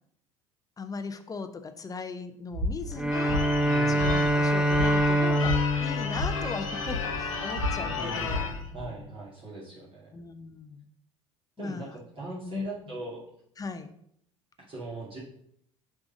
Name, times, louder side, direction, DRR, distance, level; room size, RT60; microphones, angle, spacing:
voice 1, 0.8-3.5 3.9-9.0 10.1-10.9 11.6-12.0 12.5-13.0 13.6-13.9, left 4 dB, 20° left, 8 dB, 0.8 m, -38 dB
sound 1, 2.5-8.9, left 2 dB, 80° right, 1.6 m, -34 dB
Bowed string instrument, 2.9-7.3, equal, 5° right, 0.5 m, -26 dB
Church bell / Car / Alarm, 3.1-8.7, left 5 dB, 80° left, 1.0 m, -34 dB
voice 2, 3.6-4.1 7.8-8.5 8.7-10.1 11.6-13.2 14.6-15.2, right 2 dB, 35° right, -5 dB, 2.2 m, -40 dB
6.1 x 3.8 x 6.2 m, 0.70 s
figure-of-eight pair, 65°, 17 cm